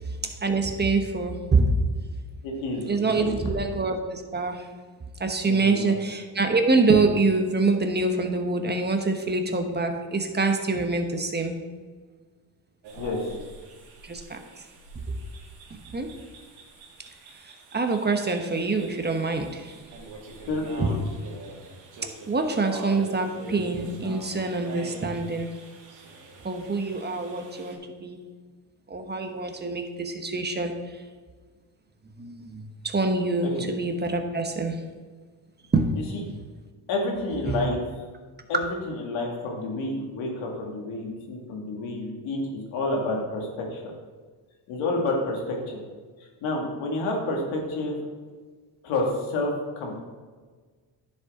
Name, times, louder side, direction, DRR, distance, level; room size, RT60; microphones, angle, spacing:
voice 1, 0.2-1.8 2.8-4.7 5.2-11.6 14.0-14.6 14.9-15.0 15.7-16.1 17.3-19.7 20.8-20.9 22.3-25.5 26.4-28.2 28.9-31.0 32.0-34.8 35.7-36.4 37.5-37.7, right 3 dB, 20° right, 5 dB, 1.2 m, -26 dB
voice 2, 2.4-3.4 5.5-6.0 12.9-13.4 20.4-21.0 33.5-33.6 36.9-37.8 38.5-43.9 44.7-45.8 46.4-47.9 48.8-50.0, left 2 dB, 90° left, 0 dB, 2.3 m, -29 dB
sound 1, 12.8-27.8, right 2 dB, 80° right, 2.3 m, -44 dB
10.5 x 7.2 x 3.8 m, 1.5 s
cardioid pair, 90°, 46 cm